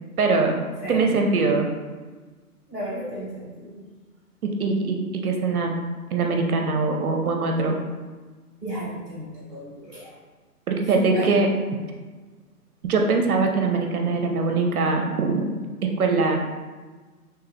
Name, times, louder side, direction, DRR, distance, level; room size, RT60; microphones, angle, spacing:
voice 1, 0.2-0.6 0.9-1.7 4.4-5.0 5.2-5.7 6.1-7.8 10.7-11.5 12.8-15.4 15.8-16.4, right 3 dB, 65° right, 3 dB, 0.6 m, -22 dB
voice 2, 2.7-3.8 8.6-10.1 10.8-11.4, right 1 dB, 10° left, -14 dB, 1.0 m, -33 dB
3.3 x 3.1 x 3.4 m, 1.4 s
hypercardioid pair, 160°, 47 cm